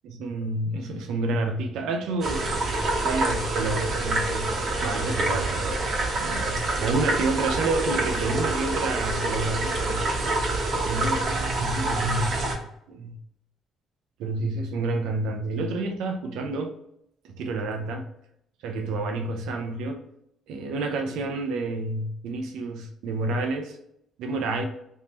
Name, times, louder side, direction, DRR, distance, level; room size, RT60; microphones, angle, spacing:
voice 1, 0.0-2.5 3.0-10.0 10.9-12.6 12.9-13.2 14.2-16.7 17.2-18.1 18.6-20.0 20.5-23.8 24.2-24.6, right 2 dB, 80° right, 0.6 m, -29 dB
sound 1, 2.2-12.5, right 2 dB, 55° right, 1.0 m, -27 dB
3.6 x 2.8 x 3.0 m
cardioid pair, 85°, 0 cm